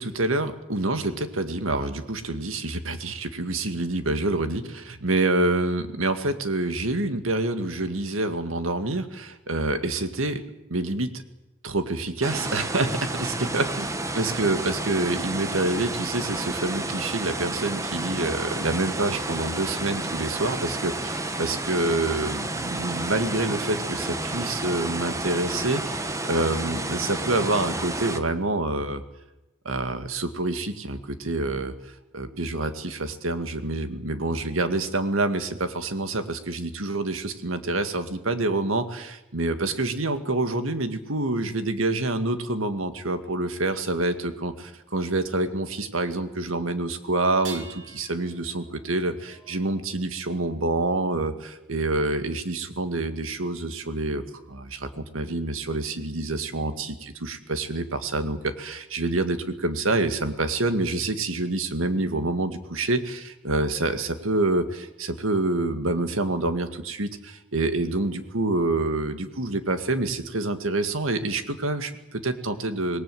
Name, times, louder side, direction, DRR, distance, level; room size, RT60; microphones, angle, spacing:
voice 1, 0.0-10.4 10.7-11.1 11.6-29.0 29.7-31.7 32.1-73.0, right 2 dB, 85° right, 9 dB, 2.0 m, -27 dB
sound 1, 12.2-28.2, right 2 dB, 15° right, 1.2 m, -31 dB
sound 2, 47.3-50.5 52.1-52.2 53.0-53.1, right 5 dB, 65° right, 3.0 m, -45 dB
26.5 x 20.0 x 7.9 m, 0.94 s
head